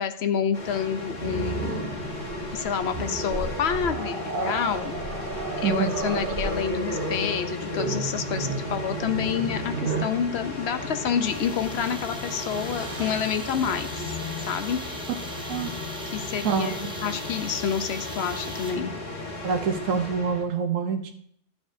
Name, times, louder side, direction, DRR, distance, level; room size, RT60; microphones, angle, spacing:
voice 1, 0.0-1.7 2.5-4.9 5.6-14.1 14.5-14.8 16.1-18.9, left 7 dB, 60° left, 10 dB, 0.9 m, -28 dB
sound 1, 0.5-20.4, left 2 dB, 40° left, 1.1 m, -35 dB
Growling, 1.2-10.2 11.6-11.8 12.2-13.3, right 3 dB, 45° right, 1.2 m, -32 dB
voice 2, 5.6-5.9 15.5-15.7 16.4-16.8 19.4-21.1, right 6 dB, 85° right, 4 dB, 1.1 m, -26 dB
sound 2, 11.3-19.0, right 1 dB, 5° right, 0.7 m, -41 dB
11.5 x 7.0 x 2.6 m, 0.67 s
omnidirectional pair, 1.3 m